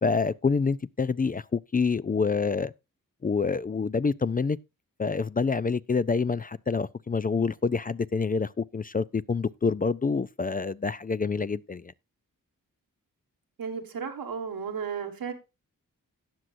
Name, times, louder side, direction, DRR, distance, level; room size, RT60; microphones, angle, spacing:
voice 1, 0.0-2.7 3.2-4.6 5.0-11.9, left 4 dB, 25° left, 0.4 m, -27 dB
voice 2, 13.6-15.3, right 6 dB, 90° right, 1.7 m, -34 dB
18.0 x 6.2 x 2.6 m
cardioid pair, 60°, 34 cm